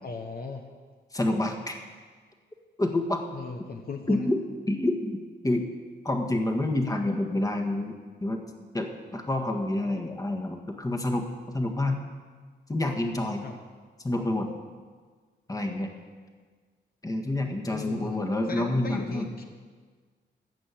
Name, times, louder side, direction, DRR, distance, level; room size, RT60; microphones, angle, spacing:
voice 1, 0.0-0.7 3.3-4.3 13.4-13.6 17.7-18.2 18.5-19.4, left 4 dB, 50° left, 3 dB, 1.2 m, -37 dB
voice 2, 1.1-1.8 2.8-3.2 4.1-4.4 4.7-5.2 5.4-5.7 6.0-8.4 8.7-11.3 11.5-12.0 12.7-13.4 14.0-14.5 15.5-15.9 17.0-19.3, left 1 dB, 20° left, 3 dB, 1.7 m, -28 dB
15.5 x 6.3 x 8.5 m, 1.5 s
cardioid pair, 85°, 19 cm